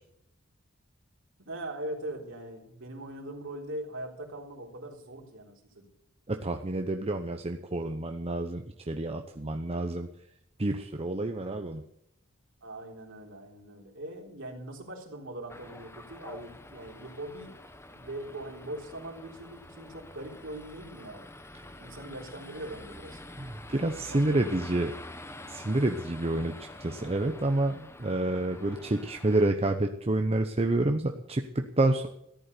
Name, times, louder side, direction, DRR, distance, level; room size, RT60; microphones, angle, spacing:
voice 1, 1.5-5.8 12.6-17.5 18.0-21.2 21.8-23.2 24.1-24.8, right 1 dB, 65° right, 1 dB, 3.8 m, -41 dB
voice 2, 6.3-10.1 10.6-11.8 23.4-24.9 25.5-26.5 26.8-32.1, right 2 dB, 30° right, 5 dB, 0.8 m, -28 dB
sound 1, 15.5-29.5, left 1 dB, 10° left, 0.9 m, -47 dB
14.0 x 11.0 x 6.8 m, 0.74 s
head